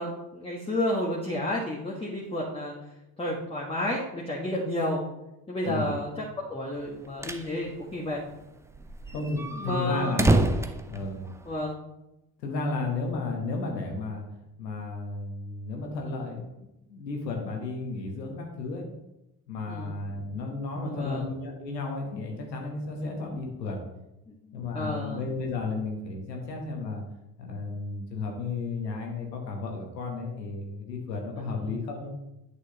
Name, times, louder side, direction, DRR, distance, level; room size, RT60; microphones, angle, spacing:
voice 1, 0.0-2.7 3.2-5.0 5.5-6.1 6.5-8.2 9.6-10.1 11.4-11.8 19.7-19.9 20.7-21.3 23.0-23.1 24.3-25.2 31.4-31.8, left 1 dB, 10° left, -4 dB, 1.3 m, -31 dB
voice 2, 5.6-6.0 9.1-10.5 10.9-11.2 12.4-14.2 14.6-18.9 19.5-23.8 24.5-27.0 27.4-32.2, left 3 dB, 90° left, 1 dB, 1.2 m, -33 dB
sound 1, 6.9-7.5 7.8-7.9 8.1-8.2 8.7-11.7, right 2 dB, 5° right, 0.4 m, -27 dB
8.4 x 6.3 x 2.8 m, 0.92 s
hypercardioid pair, 55°, 49 cm